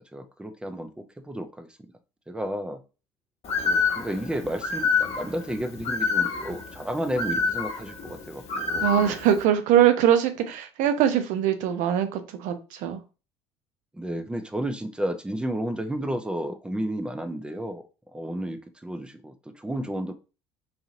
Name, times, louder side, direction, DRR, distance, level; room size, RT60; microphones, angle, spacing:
voice 1, 0.1-1.7 2.3-2.8 3.6-9.1 13.9-17.8 18.1-20.1, right 1 dB, 5° right, 0.6 m, -32 dB
Bird, 3.4-9.4, left 5 dB, 40° left, 1.0 m, -28 dB
voice 2, 8.8-13.0, right 10 dB, 55° right, 0.7 m, -22 dB
4.1 x 2.8 x 2.6 m
figure-of-eight pair, 60°, 16 cm